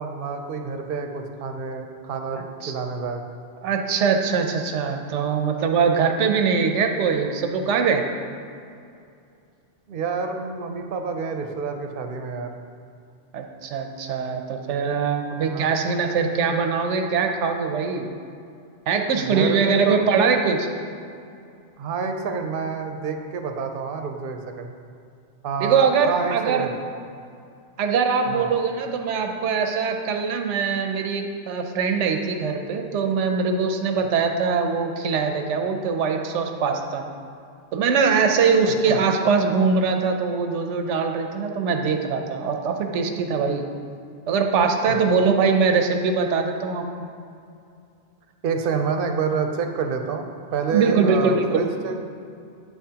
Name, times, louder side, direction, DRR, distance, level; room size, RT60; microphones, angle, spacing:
voice 1, 0.0-2.4 2.7-3.2 9.9-12.5 15.4-15.7 19.1-20.0 21.8-24.7 25.4-26.7 28.3-28.5 38.6-39.0 44.9-45.2 48.4-50.2 50.5-52.0, right 5 dB, 55° right, 5 dB, 0.7 m, -28 dB
voice 2, 2.3-2.7 3.6-8.0 13.3-18.1 18.9-20.7 25.6-26.7 27.8-37.0 37.7-43.6 44.3-47.1 50.7-51.6, right 5 dB, 85° right, 4 dB, 1.0 m, -22 dB
9.3 x 5.8 x 2.8 m, 2.5 s
omnidirectional pair, 1.2 m